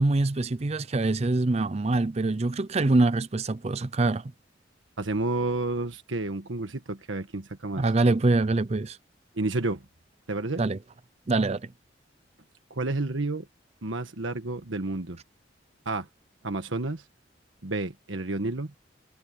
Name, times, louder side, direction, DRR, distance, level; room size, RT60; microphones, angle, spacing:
voice 1, 0.0-4.3 7.8-9.0 10.6-10.8 11.3-11.7, right 2 dB, 35° right, 0.5 m, -24 dB
voice 2, 5.0-7.8 9.4-9.8 10.3-10.6 12.7-13.5 13.8-15.2 15.8-16.1 16.4-17.0 17.6-18.7, right 2 dB, 90° right, 1.4 m, -30 dB
head